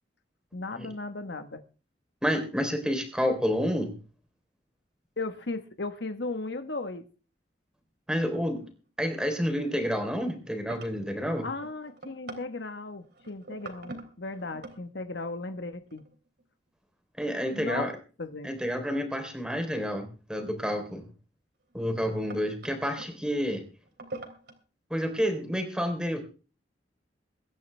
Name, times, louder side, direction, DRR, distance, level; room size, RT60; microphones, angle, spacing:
voice 1, 0.5-1.6 5.2-7.0 11.4-16.0 17.5-17.9 18.2-18.5, left 3 dB, 70° left, 9 dB, 1.3 m, -36 dB
voice 2, 2.2-3.9 8.1-8.7 9.0-11.5 17.2-17.9 18.4-21.0 21.7-23.7 24.9-26.2, equal, 5° right, 5 dB, 3.5 m, -29 dB
sound 1, 6.5-6.6 8.6-9.1 9.4-9.7 10.2-14.8 15.9-16.4 18.4-18.5 20.8-20.9 21.7-23.1 23.8-24.6, right 2 dB, 65° right, 3.4 m, -45 dB
23.0 x 10.5 x 3.4 m, 0.37 s
head